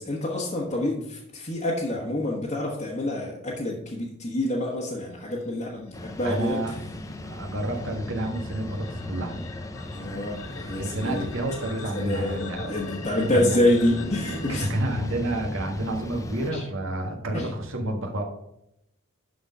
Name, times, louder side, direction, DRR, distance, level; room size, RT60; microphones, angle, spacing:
voice 1, 0.0-6.8 9.9-11.2 11.9-14.7 16.5-16.6 17.3-17.5, left 1 dB, 35° left, -4 dB, 1.3 m, -27 dB
sound 1, 5.4-14.7, left 3 dB, 85° left, 1.4 m, -42 dB
sound 2, 5.9-16.5, left 1 dB, 15° left, 0.5 m, -38 dB
voice 2, 6.2-6.7 7.2-9.5 10.7-12.7 13.3-13.6 14.5-18.2, right 1 dB, 65° right, 2 dB, 1.6 m, -29 dB
11.5 x 4.3 x 5.4 m, 0.81 s
head